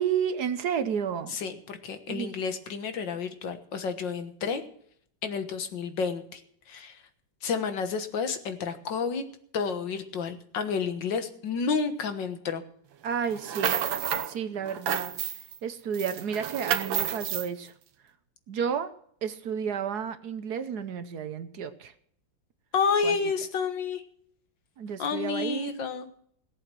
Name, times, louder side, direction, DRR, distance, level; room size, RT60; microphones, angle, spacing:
voice 1, 0.0-1.3 2.1-2.4 13.0-13.7 14.2-15.1 15.6-17.7 18.5-18.9 19.2-21.9 23.0-23.3 24.8-25.7, right 7 dB, 60° right, 11 dB, 1.3 m, -31 dB
voice 2, 1.3-4.6 5.2-6.4 6.7-7.0 7.4-9.2 9.5-12.6 22.7-24.0 25.0-26.1, left 5 dB, 70° left, 9 dB, 2.0 m, -30 dB
sound 1, 13.3-14.3 14.7-15.6 15.9-17.5, right 9 dB, 85° right, 1.7 m, -30 dB
17.5 x 7.9 x 6.2 m, 0.64 s
omnidirectional pair, 2.1 m